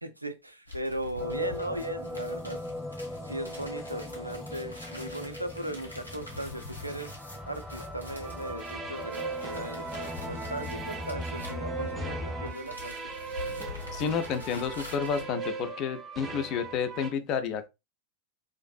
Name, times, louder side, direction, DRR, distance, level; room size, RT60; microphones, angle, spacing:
voice 1, 0.0-2.6 3.2-12.9, right 1 dB, 85° right, 0.3 m, -38 dB
sound 1, 0.7-12.1 12.4-15.3, left 2 dB, 90° left, 0.8 m, -46 dB
sound 2, 1.2-12.5, left 1 dB, 5° left, 0.8 m, -39 dB
sound 3, 8.2-17.1, right 4 dB, 20° right, 0.5 m, -39 dB
voice 2, 13.9-17.7, left 6 dB, 40° left, 0.4 m, -30 dB
2.5 x 2.5 x 2.3 m
figure-of-eight pair, 90°, 0 cm